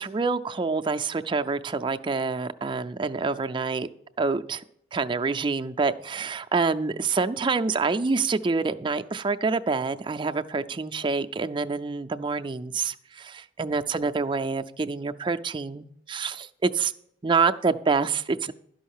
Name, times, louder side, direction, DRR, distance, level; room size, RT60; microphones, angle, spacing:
voice 1, 0.0-3.9 4.2-4.6 4.9-16.9 17.2-18.5, right 4 dB, 30° right, 8 dB, 0.4 m, -27 dB
12.0 x 5.5 x 7.2 m, 0.71 s
head